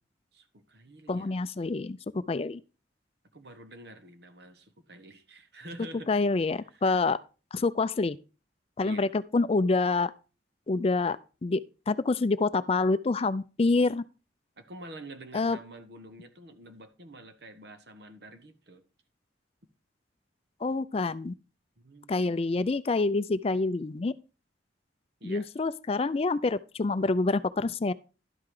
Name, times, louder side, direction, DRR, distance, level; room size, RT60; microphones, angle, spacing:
voice 1, 0.3-1.4 3.3-6.1 6.7-6.8 8.8-9.1 14.6-18.8 21.8-22.3 25.2-25.4, right 1 dB, 60° right, 1.4 m, -47 dB
voice 2, 1.1-2.6 6.1-7.2 7.5-8.2 8.8-10.1 10.7-11.2 11.4-14.0 15.3-15.6 20.6-21.3 22.1-24.1 25.2-27.9, left 3 dB, 35° left, 0.4 m, -27 dB
11.5 x 5.8 x 4.8 m
head